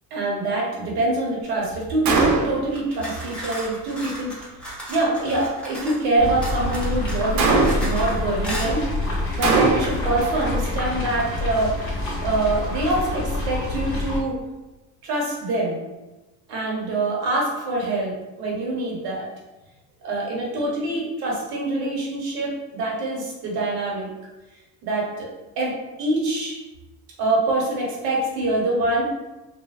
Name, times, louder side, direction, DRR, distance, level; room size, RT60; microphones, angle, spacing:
voice 1, 0.1-4.3 4.6-11.7 12.2-14.4 15.0-15.8 16.5-18.1 18.4-19.3 20.0-24.1 24.8-25.3 25.6-26.6 27.2-29.0, right 2 dB, 85° right, -2 dB, 0.9 m, -25 dB
Gunshot gunfire, 2.0-2.7 7.4-8.0 9.4-10.1, right 3 dB, 50° right, 0.5 m, -20 dB
sound 1, 2.7-6.1 6.4-8.1 8.4-8.7, equal, 5° left, 0.4 m, -35 dB
sound 2, 6.2-14.2, left 2 dB, 35° left, 0.7 m, -27 dB
2.6 x 2.2 x 2.3 m, 1.1 s
cardioid pair, 145°, 37 cm